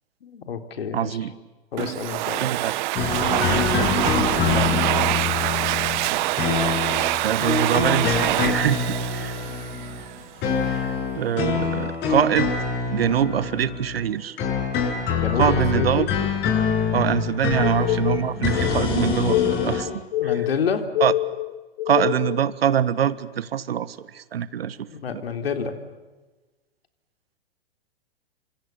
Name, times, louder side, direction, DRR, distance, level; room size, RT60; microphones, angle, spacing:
voice 1, 0.2-1.2 1.7-2.5 15.1-16.1 20.2-20.8 24.9-25.7, left 6 dB, 75° left, 7 dB, 3.5 m, -28 dB
voice 2, 0.9-1.3 2.4-2.7 3.2-4.9 7.2-9.4 10.6-12.5 12.9-14.4 15.4-16.1 16.9-19.9 20.2-20.4 21.0-21.1 21.9-24.9 25.1-25.2, right 9 dB, 75° right, 17 dB, 1.5 m, -24 dB
Domestic sounds home sounds, 1.8-10.2, right 17 dB, 50° right, 1.0 m, -25 dB
sound 1, 3.0-14.1 14.4-19.8, left 6 dB, 35° left, 7.3 m, -25 dB
sound 2, 17.6-22.4, left 16 dB, 55° left, 1.0 m, -26 dB
28.5 x 26.5 x 7.1 m, 1.2 s
hypercardioid pair, 110°, 30 cm